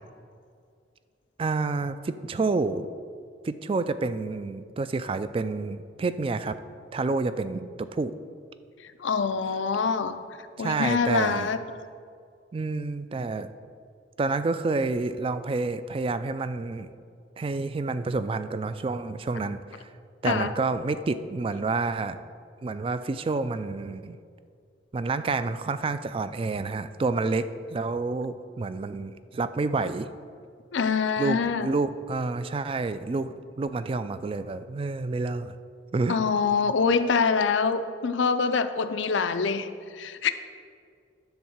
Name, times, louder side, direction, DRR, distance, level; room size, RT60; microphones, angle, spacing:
voice 1, 1.4-2.9 3.4-6.6 6.9-8.1 10.6-11.5 12.5-13.5 14.2-16.9 17.4-19.9 20.2-22.2 22.6-24.2 24.9-27.4 27.7-30.1 31.2-35.5 35.9-36.2, right 3 dB, 30° right, 12 dB, 0.3 m, -29 dB
voice 2, 8.8-10.2 10.6-11.6 20.2-20.5 30.7-31.7 36.1-40.3, left 5 dB, 80° left, 11 dB, 0.5 m, -25 dB
10.5 x 3.5 x 7.2 m, 2.3 s
head